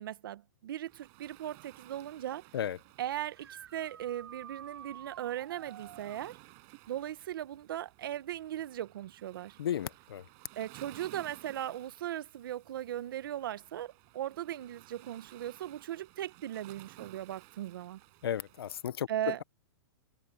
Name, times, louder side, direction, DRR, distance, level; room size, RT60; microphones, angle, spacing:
voice 1, 0.0-2.4 3.0-6.4 6.9-9.6 10.6-18.0 19.1-19.4, right 12 dB, 60° right, 1.3 m, -38 dB
Waves surf, 0.9-18.8, right 40 dB or more, 35° right, 7.9 m, -57 dB
sound 1, 3.2-6.2 9.5-9.6 11.7-11.8 18.0-18.1, right 9 dB, 85° right, 4.2 m, -50 dB
voice 2, 9.6-10.2 18.2-19.1, left 10 dB, 75° left, 1.1 m, -34 dB
hypercardioid pair, 160°, 13 cm